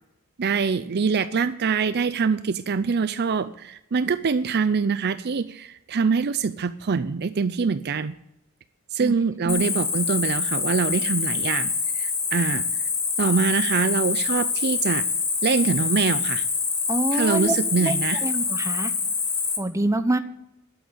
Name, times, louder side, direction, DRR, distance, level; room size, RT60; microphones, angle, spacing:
voice 1, 0.4-8.1 8.9-12.6 13.2-15.1 15.4-16.5 17.1-18.2, right 5 dB, 50° right, 13 dB, 0.5 m, -24 dB
Cricket, 9.5-19.6, left 5 dB, 25° left, 1.9 m, -25 dB
voice 2, 16.9-17.9 18.2-18.9 19.6-20.2, right 1 dB, 15° right, 9 dB, 0.9 m, -26 dB
11.5 x 8.3 x 8.0 m, 0.83 s
head